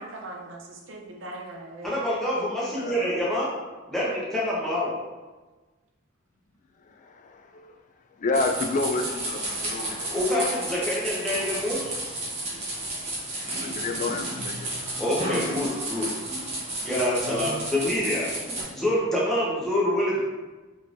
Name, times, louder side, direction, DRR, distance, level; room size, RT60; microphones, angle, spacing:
voice 1, 0.0-1.9 2.9-3.1, right 2 dB, 65° right, 1 dB, 0.6 m, -40 dB
voice 2, 1.8-3.5 3.9-4.9 10.1-11.9 15.0-16.1 16.8-18.3 18.7-20.2, left 1 dB, ahead, -7 dB, 0.9 m, -26 dB
voice 3, 2.8-3.2 6.8-7.7 8.2-10.1 13.6-14.7, left 3 dB, 40° left, 4 dB, 0.3 m, -30 dB
sound 1, 8.3-18.6, right 1 dB, 35° right, 0.9 m, -32 dB
3.5 x 3.2 x 2.5 m, 1.2 s
head